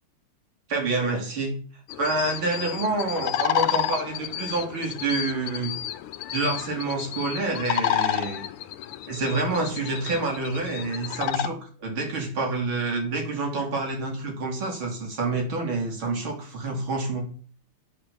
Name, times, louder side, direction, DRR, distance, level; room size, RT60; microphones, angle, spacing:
voice 1, 0.7-1.5 2.0-5.8 6.3-8.5 9.1-17.3, right 3 dB, 65° right, 2 dB, 3.6 m, -28 dB
sound 1, 1.9-11.5, left 12 dB, 80° left, 1.7 m, -30 dB
10.0 x 6.7 x 6.8 m, 0.43 s
omnidirectional pair, 2.4 m